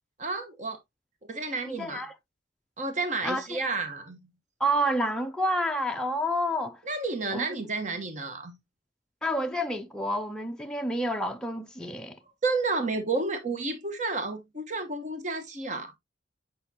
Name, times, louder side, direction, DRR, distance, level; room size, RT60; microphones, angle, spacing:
voice 1, 0.2-0.8 1.3-2.0 2.8-4.2 6.8-8.6 12.4-15.9, right 3 dB, 40° right, 1.0 m, -31 dB
voice 2, 1.7-2.1 3.2-3.6 4.6-6.8 7.3-7.5 9.2-12.2, equal, 5° left, 0.4 m, -29 dB
8.2 x 5.1 x 2.8 m
head